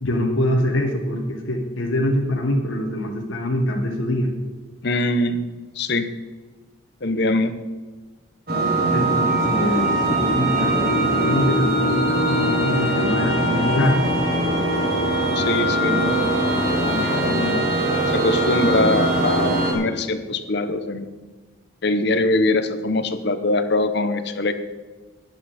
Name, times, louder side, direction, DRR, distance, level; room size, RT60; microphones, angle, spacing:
voice 1, 0.0-4.3 8.9-14.0, left 1 dB, 70° left, 0 dB, 1.5 m, -24 dB
voice 2, 4.8-5.4 5.8-6.1 7.0-7.5 15.4-17.7 18.1-21.1 21.8-24.5, left 2 dB, 55° left, 10 dB, 0.8 m, -23 dB
sound 1, 8.5-19.7, right 1 dB, 45° right, 2.6 m, -21 dB
12.5 x 10.0 x 4.2 m, 1.3 s
head